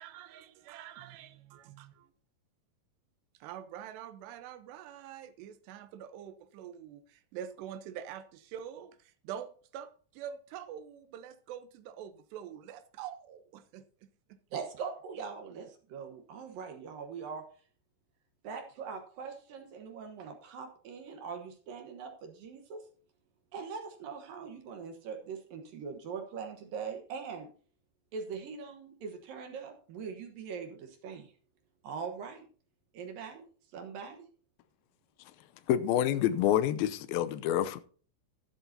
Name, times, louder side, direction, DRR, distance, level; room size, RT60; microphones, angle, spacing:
voice 1, 0.0-2.1 3.4-9.0 9.2-13.8, right 9 dB, 85° right, 3.0 m, -45 dB
voice 2, 14.5-17.4 18.4-22.8 23.5-27.5 28.1-31.3 31.8-32.5 32.9-34.3, right 6 dB, 65° right, 2.6 m, -42 dB
voice 3, 35.7-37.8, left 11 dB, 80° left, 2.3 m, -27 dB
13.0 x 11.5 x 2.8 m
omnidirectional pair, 4.8 m